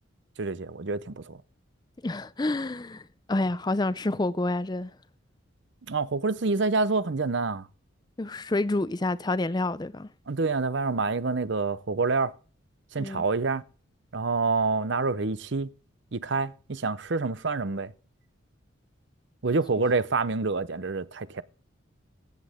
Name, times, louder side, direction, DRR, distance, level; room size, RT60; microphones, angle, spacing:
voice 1, 0.4-1.4 5.9-7.7 10.3-12.3 12.9-13.6 14.1-15.7 16.1-17.9 19.4-21.4, right 3 dB, 60° right, 0.7 m, -27 dB
voice 2, 2.0-4.9 8.2-10.1 13.0-13.2, left 2 dB, 20° left, 0.4 m, -28 dB
15.5 x 8.5 x 3.6 m
head